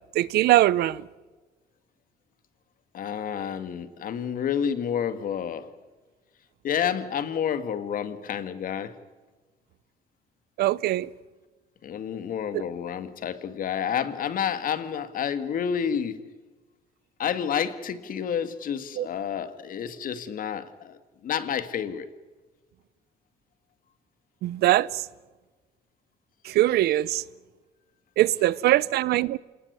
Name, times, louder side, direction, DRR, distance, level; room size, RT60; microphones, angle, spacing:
voice 1, 0.1-1.0 10.6-11.1 12.5-12.6 19.0-19.1 24.4-25.0 26.4-27.2 28.2-29.4, right 15 dB, 70° right, 0.7 m, -22 dB
voice 2, 2.9-5.7 6.6-9.0 11.8-16.2 17.2-22.1, left 8 dB, 55° left, 2.1 m, -29 dB
27.5 x 19.0 x 9.6 m
cardioid pair, 110°, 17 cm